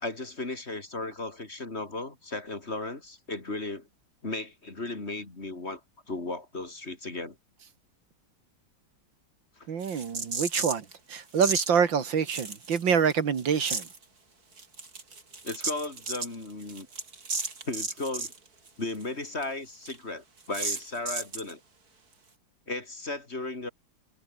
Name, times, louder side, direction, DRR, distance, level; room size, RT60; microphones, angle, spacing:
voice 1, 0.0-3.9 4.2-5.8 6.1-7.4 9.6-9.7 15.4-16.9 17.6-18.3 18.8-21.6 22.7-23.7, left 2 dB, 35° left, 3.3 m, -35 dB
voice 2, 9.7-13.9, right 7 dB, 80° right, 2.6 m, -26 dB
sound 1, 9.8-10.9 11.4-11.7 12.3-13.1 13.4-14.0 14.6-18.4 18.7-18.8 19.0-19.1 19.4-19.5 19.9-20.0 20.5-21.5, right 4 dB, 50° right, 3.5 m, -34 dB
omnidirectional pair, 2.0 m